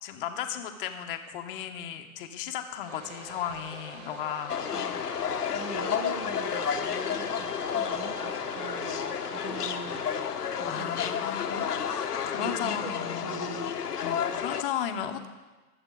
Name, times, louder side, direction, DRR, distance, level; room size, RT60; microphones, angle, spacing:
voice 1, 0.0-4.6 10.6-13.4 14.0-15.3, left 9 dB, 35° left, 6 dB, 1.2 m, -35 dB
sound 1, 2.9-10.2, right 2 dB, 65° right, 3.8 m, -45 dB
sound 2, 4.5-14.6, left 8 dB, 75° left, 1.2 m, -31 dB
voice 2, 4.7-5.1 5.5-10.1 10.5-11.0 12.4-13.7, right 5 dB, 20° right, 6 dB, 0.9 m, -41 dB
23.5 x 8.1 x 3.9 m, 1.2 s
hypercardioid pair, 140°, 47 cm